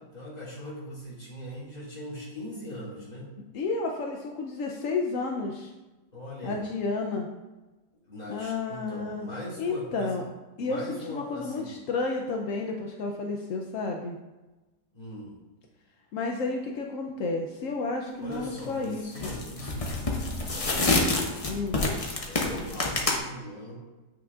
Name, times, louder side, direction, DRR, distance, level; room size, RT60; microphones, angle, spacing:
voice 1, 0.1-3.3 6.1-6.6 7.9-10.3 10.6-11.8 14.9-15.4 18.1-21.5 22.2-23.8, equal, 25° left, -7 dB, 2.3 m, -40 dB
voice 2, 3.5-5.7 6.4-7.3 8.3-9.3 9.6-10.2 10.6-14.2 16.1-19.4 21.5-21.9, left 3 dB, 65° left, 1 dB, 0.8 m, -31 dB
sound 1, 18.3-18.6 19.1-23.2, left 2 dB, 45° left, 0.4 m, -27 dB
8.6 x 6.0 x 2.4 m, 1.2 s
omnidirectional pair, 1.9 m